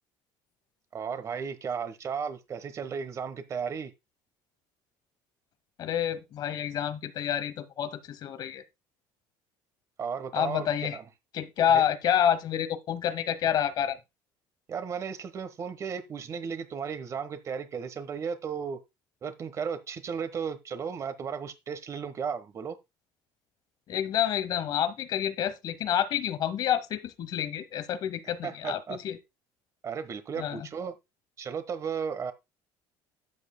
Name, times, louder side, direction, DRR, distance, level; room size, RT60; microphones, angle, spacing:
voice 1, 0.9-3.9 10.0-11.0 11.7-11.8 14.7-18.8 19.2-22.8 28.4-29.0 29.8-30.9 31.4-32.3, right 6 dB, 30° right, 1.2 m, -35 dB
voice 2, 5.8-8.6 10.3-11.0 11.3-14.0 23.9-29.2 30.4-30.7, left 9 dB, 45° left, 1.0 m, -28 dB
12.0 x 8.1 x 2.2 m
cardioid pair, 145°, 10 cm